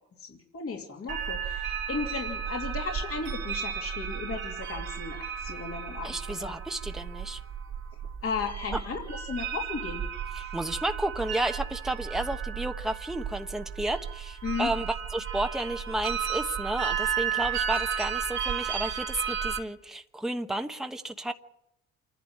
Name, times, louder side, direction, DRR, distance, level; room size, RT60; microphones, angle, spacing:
voice 1, 0.0-6.5 8.2-10.0 10.4-10.5 14.4-14.7, left 5 dB, 50° left, 1 dB, 2.8 m, -35 dB
sound 1, 1.1-19.6, right 8 dB, 80° right, 2.6 m, -33 dB
voice 2, 6.0-7.4 10.3-21.3, right 1 dB, ahead, 5 dB, 1.1 m, -32 dB
27.0 x 11.0 x 9.0 m, 0.85 s
cardioid pair, 90°, 30 cm